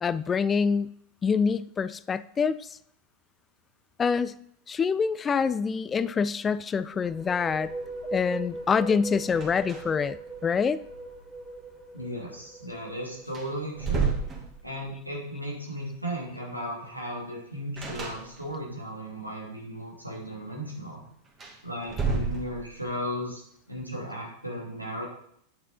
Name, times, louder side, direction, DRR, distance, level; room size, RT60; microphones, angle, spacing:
voice 1, 0.0-0.9 1.2-2.8 4.0-4.3 4.7-7.7 8.1-10.2 10.4-10.8, left 5 dB, 20° left, 17 dB, 0.3 m, -26 dB
sound 1, 6.8-14.4, right 2 dB, ahead, 1.9 m, -40 dB
sound 2, 9.3-10.1 10.4-10.5 12.7-12.8 13.3-15.0 17.8-18.7 21.2-22.9, right 5 dB, 25° right, 2.3 m, -32 dB
voice 2, 11.9-14.1 14.6-21.0 21.6-25.0, equal, 90° right, -2 dB, 2.7 m, -36 dB
8.8 x 6.5 x 4.4 m, 0.70 s
figure-of-eight pair, 90°, 0 cm